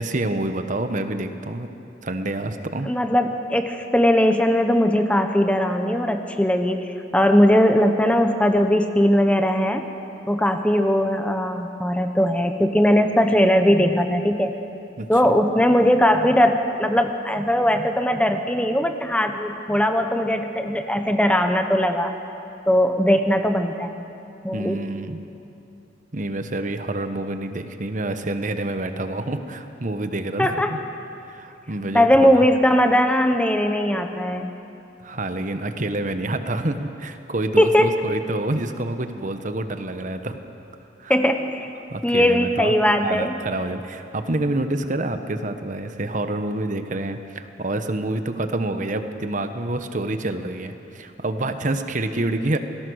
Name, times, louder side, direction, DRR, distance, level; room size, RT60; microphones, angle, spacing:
voice 1, 0.0-1.7 2.0-2.9 15.0-15.1 24.5-25.2 26.1-30.8 31.3-32.4 35.0-40.4 41.0-41.1 41.9-42.7 43.0-52.6, right 2 dB, 45° right, 8 dB, 1.2 m, -27 dB
voice 2, 2.9-9.8 10.3-14.5 15.1-22.1 22.7-23.9 24.4-24.8 30.4-30.7 31.9-34.5 37.6-38.0 41.1-41.7 42.0-43.4, equal, 5° left, 6 dB, 0.9 m, -19 dB
27.0 x 19.0 x 6.4 m, 2.8 s
head